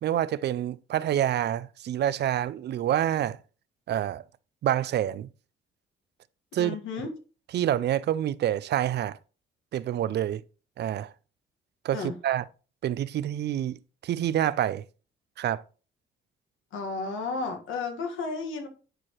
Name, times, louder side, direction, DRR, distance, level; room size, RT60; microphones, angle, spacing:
voice 1, 0.0-3.4 3.9-4.2 4.6-5.3 6.5-6.8 7.5-9.2 9.7-10.4 10.8-11.1 11.8-12.4 12.8-14.8 15.4-15.6, right 11 dB, 60° right, 0.4 m, -27 dB
voice 2, 6.5-7.1 11.9-12.2 16.7-18.7, left 4 dB, 75° left, 1.6 m, -33 dB
10.0 x 4.7 x 3.0 m
cardioid pair, 90°, 20 cm